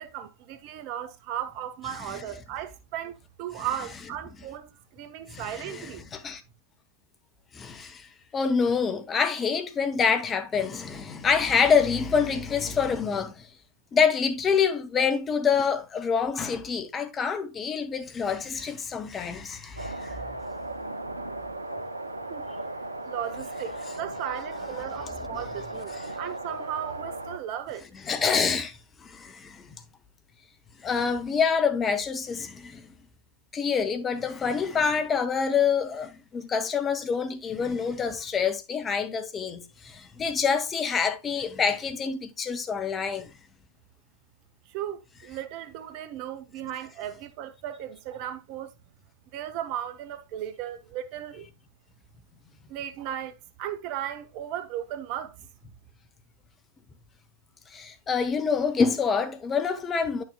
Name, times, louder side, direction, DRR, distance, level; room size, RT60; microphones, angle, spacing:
voice 1, 0.0-6.0 22.3-22.5 23.0-27.8 44.7-48.7 49.3-51.5 52.7-55.4, right 11 dB, 45° right, 0.9 m, -36 dB
voice 2, 5.3-6.4 7.5-8.1 8.3-13.5 13.9-20.2 25.9-26.2 28.1-29.7 30.8-32.9 33.5-43.3 57.7-60.2, left 6 dB, 20° left, 1.0 m, -26 dB
sound 1, 19.8-27.4, right 2 dB, 85° right, 0.6 m, -36 dB
10.5 x 6.4 x 2.3 m
figure-of-eight pair, 90°, 0 cm